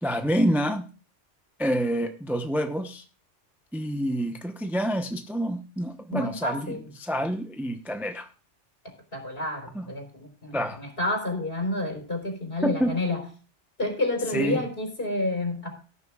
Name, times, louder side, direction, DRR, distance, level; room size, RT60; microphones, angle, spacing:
voice 1, 0.0-0.9 1.6-3.0 3.7-8.3 9.7-9.9 10.5-10.8 12.6-13.0 14.3-14.7, equal, ahead, 6 dB, 0.7 m, -27 dB
voice 2, 6.1-6.8 9.1-13.2 13.8-15.7, left 1 dB, 50° left, 2 dB, 4.3 m, -29 dB
18.0 x 9.7 x 2.3 m, 0.35 s
omnidirectional pair, 1.2 m